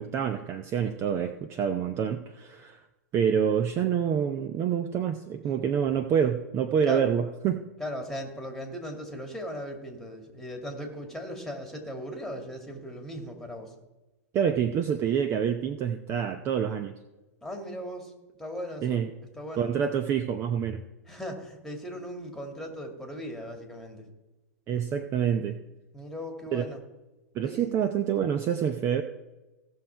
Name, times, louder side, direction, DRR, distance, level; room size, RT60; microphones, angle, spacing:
voice 1, 0.0-2.8 3.1-7.7 14.3-16.9 18.8-19.1 19.6-20.8 24.7-25.6 26.5-26.6 27.3-29.0, right 8 dB, 30° right, 8 dB, 0.6 m, -27 dB
voice 2, 7.8-13.7 17.4-18.1 18.4-19.0 19.3-19.7 21.1-24.1 25.9-26.8 27.4-27.7, equal, ahead, 3 dB, 2.2 m, -38 dB
16.5 x 6.4 x 4.6 m, 1.1 s
figure-of-eight pair, 100°, 9 cm